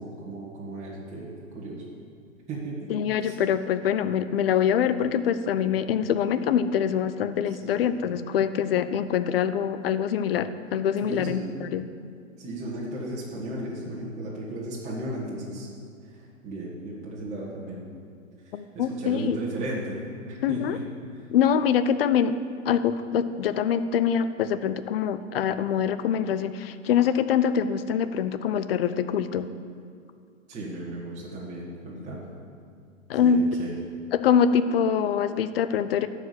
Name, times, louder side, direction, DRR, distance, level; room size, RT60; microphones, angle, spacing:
voice 1, 0.0-1.8 2.5-2.9 3.2-3.3 5.7-5.8 7.6-7.9 11.0-11.4 12.4-15.7 16.4-17.8 18.7-20.0 20.2-20.8 30.5-32.3 33.2-33.7, right 1 dB, 15° right, -6 dB, 1.8 m, -35 dB
voice 2, 2.9-11.8 18.5-19.4 20.4-20.8 21.3-22.4 22.6-29.5 33.1-33.5 34.1-36.1, left 8 dB, 45° left, 12 dB, 0.6 m, -24 dB
12.5 x 5.0 x 7.9 m, 2.2 s
hypercardioid pair, 125°, 39 cm